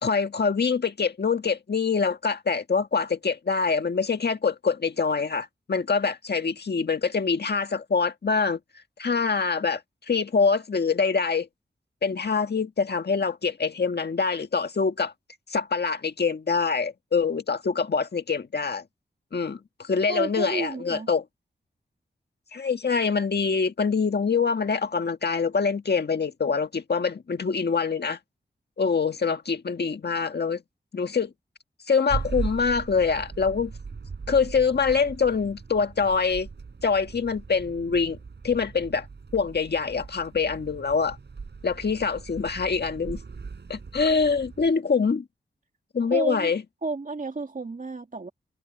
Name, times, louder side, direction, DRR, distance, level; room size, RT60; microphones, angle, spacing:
voice 1, 0.0-8.6 9.0-9.8 10.1-11.5 12.0-15.1 15.5-18.8 19.3-21.2 22.5-28.2 28.8-30.6 30.9-31.3 31.9-33.7 34.3-36.5 36.8-38.2 38.4-39.1 39.3-41.2 41.6-43.2 43.7-45.2 45.9-46.6, left 5 dB, 65° left, 1.8 m, -25 dB
voice 2, 20.1-21.1 46.1-46.5 46.8-48.3, right 3 dB, 45° right, 2.6 m, -31 dB
sound 1, 32.1-44.7, right 4 dB, 70° right, 5.6 m, -38 dB
wide cardioid pair, 65°, 18 cm